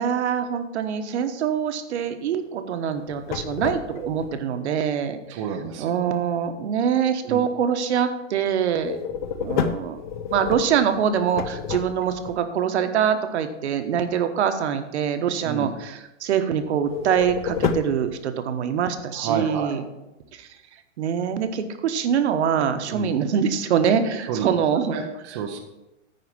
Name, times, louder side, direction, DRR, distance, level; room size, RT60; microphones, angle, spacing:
voice 1, 0.0-5.4 5.8-9.0 9.4-10.0 10.3-19.8 20.3-20.5 21.0-25.0, right 8 dB, 60° right, 8 dB, 1.1 m, -24 dB
sound 1, 3.0-4.3 8.8-12.3 16.9-18.1, left 7 dB, 40° left, 0.5 m, -30 dB
voice 2, 5.3-5.9 7.2-7.4 15.4-15.7 19.1-19.7 22.9-23.1 24.3-24.5 24.9-25.6, right 7 dB, 25° right, 2 dB, 0.6 m, -29 dB
9.5 x 4.9 x 7.2 m, 0.96 s
supercardioid pair, 170°, 38 cm